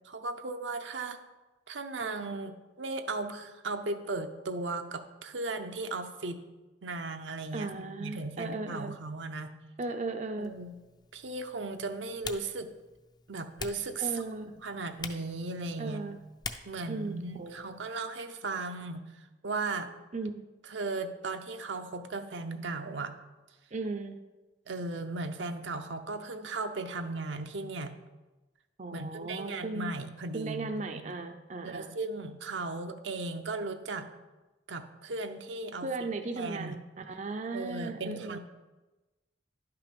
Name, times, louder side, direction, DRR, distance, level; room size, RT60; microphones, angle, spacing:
voice 1, 0.1-1.2 1.7-6.4 6.8-9.5 10.4-10.8 11.1-12.7 13.3-14.2 14.6-16.0 16.7-19.9 20.6-23.1 24.7-27.9 28.9-31.1 31.6-34.1 34.7-35.9 36.4-36.8 37.5-38.4, right 3 dB, 80° right, 7 dB, 0.7 m, -36 dB
voice 2, 7.5-8.9 9.8-10.5 14.0-14.5 15.8-16.2 16.9-17.7 20.1-20.5 23.7-24.2 28.8-29.9 30.3-32.0 35.8-38.4, right 3 dB, 40° right, 6 dB, 0.5 m, -36 dB
Typing, 10.4-17.9, left 4 dB, 25° left, 0.5 m, -46 dB
11.0 x 5.8 x 5.2 m, 1.1 s
head